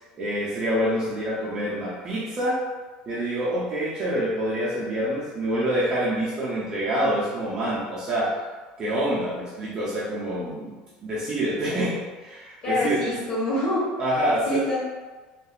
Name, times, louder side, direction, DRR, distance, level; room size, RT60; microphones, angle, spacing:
voice 1, 0.1-2.6 3.1-8.3 8.8-10.7 11.0-13.1 14.0-14.6, equal, 25° right, -8 dB, 0.6 m, -26 dB
voice 2, 12.6-13.8 14.3-14.8, left 1 dB, 40° left, -6 dB, 1.1 m, -26 dB
2.9 x 2.6 x 2.4 m, 1.3 s
cardioid pair, 160°, 3 cm